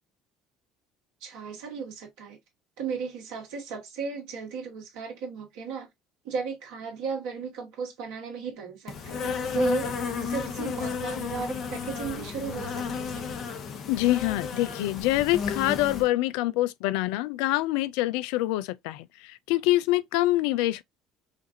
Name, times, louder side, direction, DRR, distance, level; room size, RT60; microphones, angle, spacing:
voice 1, 1.2-2.4 2.8-5.9 6.2-13.3, right 5 dB, 75° right, 1.8 m, -35 dB
Insect, 8.9-16.1, left 6 dB, 55° left, 1.0 m, -33 dB
voice 2, 13.9-20.8, left 17 dB, 75° left, 0.3 m, -25 dB
5.0 x 2.5 x 2.7 m
hypercardioid pair, 70°, 0 cm